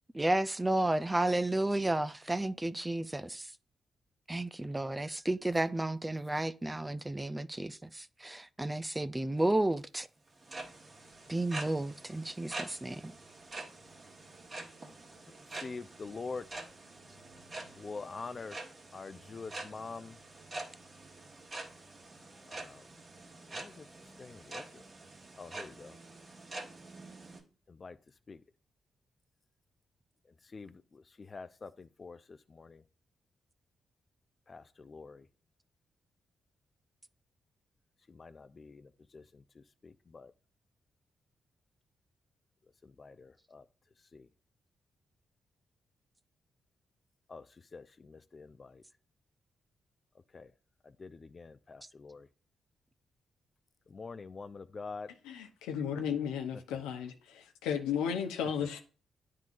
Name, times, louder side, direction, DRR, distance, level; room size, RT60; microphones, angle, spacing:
voice 1, 0.1-3.5 4.3-10.1 11.3-13.1, right 1 dB, 20° right, 0.4 m, -32 dB
sound 1, 10.3-27.4, right 2 dB, 45° right, 2.0 m, -46 dB
voice 2, 15.6-16.4 17.8-18.6 18.9-20.2 22.5-22.8 23.5-23.9 24.2-24.8 25.4-25.9 27.7-28.0 28.3-28.4 30.5-32.8 34.5-35.2 38.1-40.3 42.8-43.6 44.1-44.3 47.3-47.4 47.7-48.8 50.3-50.5 51.0-52.3 53.9-55.1, left 4 dB, 45° left, 0.5 m, -46 dB
voice 3, 55.2-58.8, left 8 dB, 85° left, 0.8 m, -34 dB
10.5 x 3.7 x 2.5 m
hypercardioid pair, 40°, 0 cm